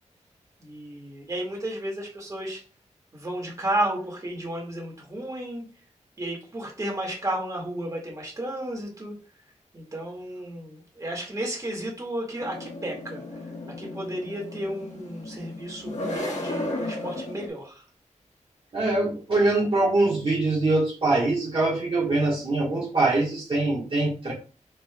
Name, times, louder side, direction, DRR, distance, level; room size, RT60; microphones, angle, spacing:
voice 1, 0.6-2.6 3.1-5.7 6.2-9.1 9.7-13.2 13.8-17.8, right 1 dB, 25° right, -2 dB, 1.7 m, -33 dB
sound 1, 12.4-17.5, left 1 dB, 65° left, 1.3 m, -34 dB
voice 2, 18.7-24.3, right 2 dB, 45° right, -5 dB, 1.4 m, -23 dB
5.3 x 4.4 x 2.3 m, 0.36 s
wide cardioid pair, 140°, 13 cm